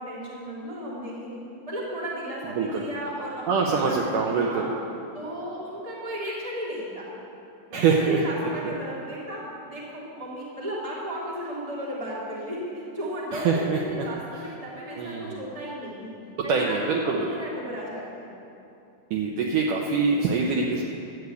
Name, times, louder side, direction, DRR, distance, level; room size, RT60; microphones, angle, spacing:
voice 1, 0.0-1.4 1.7-4.7 5.1-7.1 7.7-16.1 16.4-18.3, equal, 10° right, -7 dB, 2.4 m, -35 dB
voice 2, 3.5-4.7 7.7-8.2 8.6-8.7 13.3-14.1 14.3-14.5 15.0-15.4 16.5-17.3 19.1-20.8, right 5 dB, 75° right, 0 dB, 1.9 m, -24 dB
12.5 x 8.0 x 8.3 m, 2.7 s
omnidirectional pair, 4.5 m